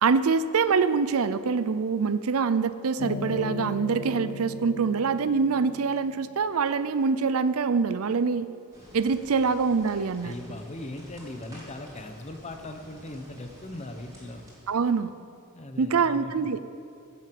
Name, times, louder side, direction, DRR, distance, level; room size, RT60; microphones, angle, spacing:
voice 1, 0.0-8.5 8.9-10.3 14.7-15.1 15.8-16.6, right 5 dB, 70° right, 14 dB, 0.5 m, -25 dB
sound 1, 3.0-6.6, left 5 dB, 85° left, 0.7 m, -37 dB
sound 2, 8.7-15.1, equal, 15° right, 3.8 m, -50 dB
voice 2, 10.2-14.4 15.5-16.3, left 1 dB, 30° left, 6 dB, 1.0 m, -39 dB
15.0 x 7.8 x 7.8 m, 2.6 s
head